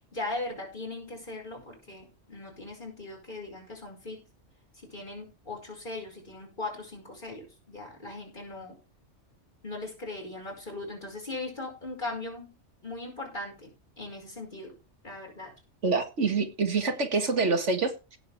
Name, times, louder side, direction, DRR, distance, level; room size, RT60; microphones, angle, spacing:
voice 1, 0.1-4.3 4.7-8.8 9.6-12.6 12.8-14.8 15.0-15.5, left 2 dB, 40° left, 0 dB, 5.6 m, -39 dB
voice 2, 15.8-18.2, right 4 dB, 75° right, 7 dB, 2.1 m, -26 dB
17.0 x 7.3 x 3.6 m, 0.29 s
omnidirectional pair, 1.2 m